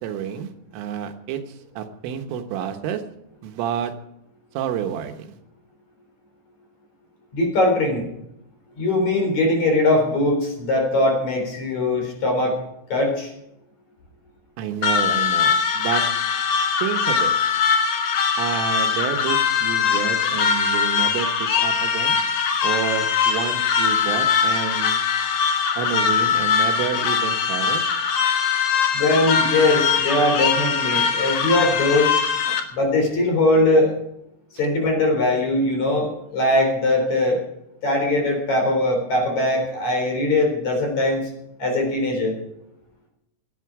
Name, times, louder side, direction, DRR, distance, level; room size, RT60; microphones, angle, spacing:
voice 1, 0.0-3.0 3.4-3.9 4.6-5.4 14.6-16.0 16.8-17.3 18.4-22.2 22.6-25.0 25.8-27.9 32.5-32.6, right 8 dB, 90° right, 6 dB, 3.8 m, -29 dB
voice 2, 7.3-8.1 8.8-12.6 12.9-13.3 28.9-32.1 32.7-33.9 34.5-37.4 37.8-41.3 41.6-42.4, left 2 dB, 40° left, 2 dB, 4.7 m, -21 dB
sound 1, 14.8-32.6, left 6 dB, 75° left, 1.8 m, -21 dB
18.0 x 12.5 x 4.8 m, 0.81 s
omnidirectional pair, 5.6 m